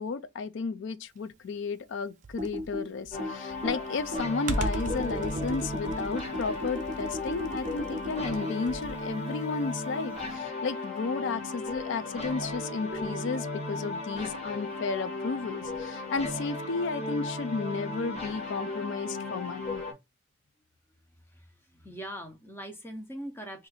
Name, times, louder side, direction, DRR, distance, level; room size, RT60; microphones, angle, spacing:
voice 1, 0.0-19.8, left 4 dB, 55° left, 0.3 m, -33 dB
Computer keyboard, 2.2-9.1, right 1 dB, 35° right, 0.4 m, -35 dB
sound 1, 3.1-19.9, left 2 dB, 30° left, 1.1 m, -36 dB
voice 2, 21.1-23.7, equal, 10° left, 0.6 m, -42 dB
2.7 x 2.5 x 3.9 m
head